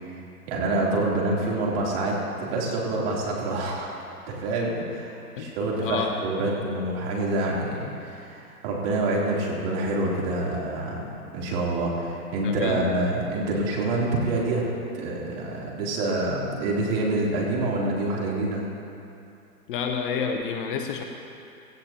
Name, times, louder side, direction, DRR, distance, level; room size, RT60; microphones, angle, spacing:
voice 1, 0.5-3.9 4.3-14.6 14.9-18.6, right 2 dB, 40° right, -4 dB, 3.5 m, -27 dB
voice 2, 5.8-6.1 12.4-13.1 19.7-21.0, left 6 dB, 35° left, 4 dB, 0.9 m, -29 dB
17.5 x 15.0 x 3.0 m, 2.6 s
hypercardioid pair, 130°, 45 cm